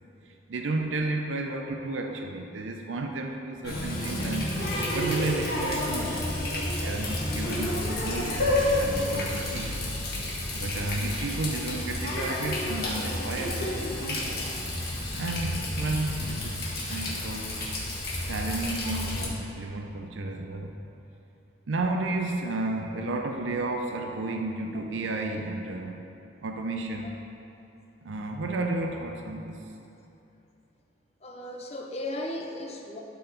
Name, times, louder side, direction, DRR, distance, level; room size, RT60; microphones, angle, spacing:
voice 1, 0.5-4.6 4.9-8.4 8.7-9.8 10.5-14.2 15.2-16.6 16.9-17.6 18.3-20.7 21.7-26.1 26.4-27.1 28.0-29.6, right 2 dB, 80° right, 3 dB, 0.5 m, -32 dB
Water tap faucet, 3.6-19.3, left 1 dB, 50° left, 1.5 m, -30 dB
voice 2, 31.2-33.0, left 1 dB, 35° left, 1 dB, 0.7 m, -36 dB
12.0 x 4.1 x 4.1 m, 2.8 s
head